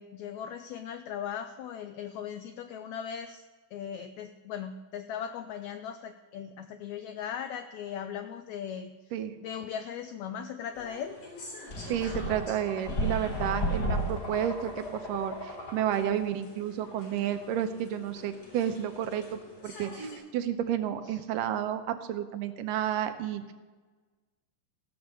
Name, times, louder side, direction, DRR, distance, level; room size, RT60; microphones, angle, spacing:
voice 1, 0.0-3.4 3.7-9.0 9.4-11.2 21.0-21.2, left 8 dB, 85° left, 9 dB, 1.6 m, -38 dB
sound 1, 10.7-20.2, left 2 dB, 65° left, 4.7 m, -48 dB
sound 2, 11.7-16.3, equal, 40° left, 1.5 m, -34 dB
voice 2, 11.9-23.5, right 10 dB, 80° right, 9 dB, 2.4 m, -31 dB
15.5 x 7.0 x 6.6 m, 1.3 s
omnidirectional pair, 3.9 m